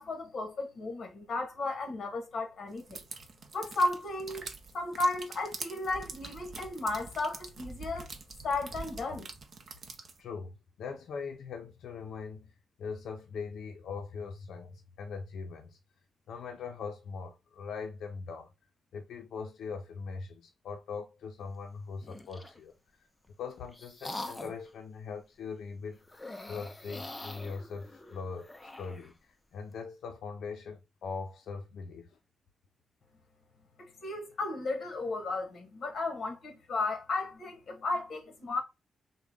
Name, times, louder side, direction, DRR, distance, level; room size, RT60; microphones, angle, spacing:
voice 1, 0.0-3.0 3.5-4.5 4.7-8.1 8.4-9.3 33.8-38.6, left 2 dB, 45° left, 1.1 m, -34 dB
sound 1, 2.8-10.2, right 4 dB, 45° right, 0.6 m, -45 dB
voice 2, 10.2-12.5 12.8-15.8 16.3-18.5 18.9-22.7 23.4-29.1 29.5-32.2, left 5 dB, 80° left, 0.4 m, -41 dB
sound 2, 22.0-22.6 23.3-24.7 26.1-29.1, left 2 dB, 15° left, 0.3 m, -44 dB
3.7 x 2.1 x 3.3 m
wide cardioid pair, 170°, 0 cm